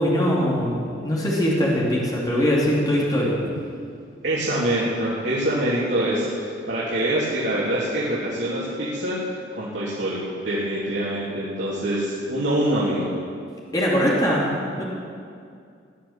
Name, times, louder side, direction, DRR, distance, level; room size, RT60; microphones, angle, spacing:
voice 1, 0.0-3.4 13.7-14.8, equal, 20° left, -5 dB, 2.8 m, -22 dB
voice 2, 4.2-6.3 6.7-9.2 9.5-13.1, right 1 dB, 75° right, -8 dB, 3.2 m, -24 dB
17.5 x 11.5 x 7.3 m, 2.3 s
head